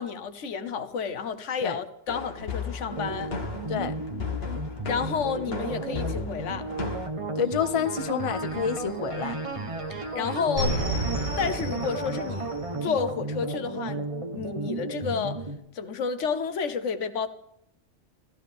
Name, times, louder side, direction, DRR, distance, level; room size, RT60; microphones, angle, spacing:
voice 1, 0.0-3.3 4.8-6.7 10.1-10.8 11.4-12.5 12.8-14.1 14.3-15.5 15.7-17.3, left 6 dB, 85° left, 1.2 m, -30 dB
sound 1, 2.1-7.1, left 6 dB, 55° left, 1.5 m, -35 dB
sound 2, 2.9-15.6, right 2 dB, 30° right, 1.1 m, -34 dB
voice 2, 7.4-9.4, left 8 dB, 35° left, 0.6 m, -28 dB
sound 3, 7.4-9.2 9.5-13.0, right 1 dB, 85° right, 6.6 m, -32 dB
13.5 x 13.5 x 3.6 m
omnidirectional pair, 1.2 m